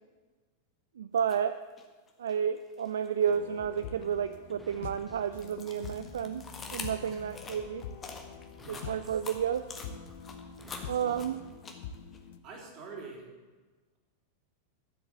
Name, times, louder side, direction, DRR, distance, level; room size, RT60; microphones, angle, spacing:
voice 1, 1.0-1.6 2.2-6.4 6.7-7.8 8.7-9.6 10.9-11.4, right 8 dB, 65° right, 11 dB, 0.4 m, -31 dB
sound 1, 1.2-1.4 1.8-3.3 3.7-12.2, left 4 dB, 20° left, 1.6 m, -46 dB
sound 2, 3.3-12.4, left 7 dB, 50° left, 0.8 m, -46 dB
sound 3, 3.6-11.6, equal, 5° left, 1.0 m, -57 dB
voice 2, 8.6-9.0 10.6-11.2 12.4-13.3, right 3 dB, 35° right, 0 dB, 3.4 m, -46 dB
12.0 x 7.8 x 7.7 m, 1.3 s
figure-of-eight pair, 90°, 0 cm